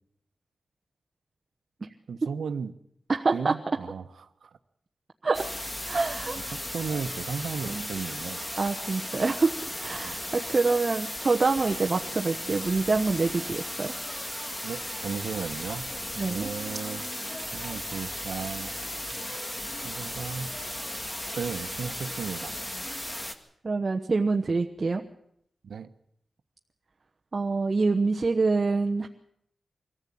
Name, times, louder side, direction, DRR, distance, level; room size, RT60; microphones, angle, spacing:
voice 1, 2.1-2.7 3.3-4.6 6.5-8.4 10.0-10.2 14.6-15.9 16.1-17.0 17.5-18.7 19.8-20.5 21.4-22.6 25.6-25.9, right 6 dB, 85° right, 10 dB, 1.1 m, -35 dB
voice 2, 3.1-3.5 5.2-5.4 5.9-6.3 7.7-7.9 8.6-9.6 9.8-13.9 16.2-16.5 23.6-25.0 27.3-29.1, right 3 dB, 40° right, 4 dB, 1.1 m, -26 dB
sound 1, 5.3-23.4, left 1 dB, 20° left, 2.2 m, -36 dB
sound 2, 16.5-20.6 20.9-22.0, right 2 dB, 15° right, 3.7 m, -50 dB
23.0 x 15.0 x 8.6 m, 0.72 s
wide cardioid pair, 105°, 0 cm